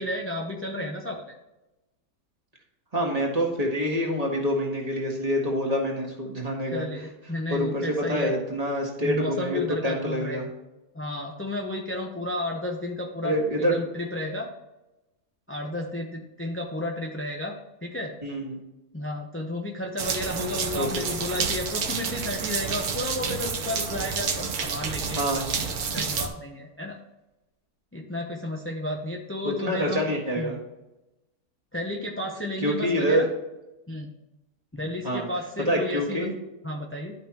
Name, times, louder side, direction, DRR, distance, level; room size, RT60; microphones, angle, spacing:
voice 1, 0.0-1.3 6.7-8.3 9.0-10.5 10.9-14.5 15.5-17.5 17.8-18.1 18.9-27.0 27.9-30.1 30.4-30.5 31.7-33.3 33.9-34.1 34.7-36.3 36.6-37.1, left 1 dB, 15° left, 0 dB, 0.4 m, -32 dB
voice 2, 2.9-6.8 7.5-10.5 13.2-13.8 18.2-18.6 20.7-21.0 25.1-25.5 29.4-30.6 32.6-33.2 35.0-35.3 35.6-36.3, equal, 25° right, -1 dB, 1.8 m, -26 dB
sound 1, 20.0-26.3, right 5 dB, 70° right, 1.4 m, -29 dB
12.0 x 5.5 x 3.0 m, 0.99 s
omnidirectional pair, 1.6 m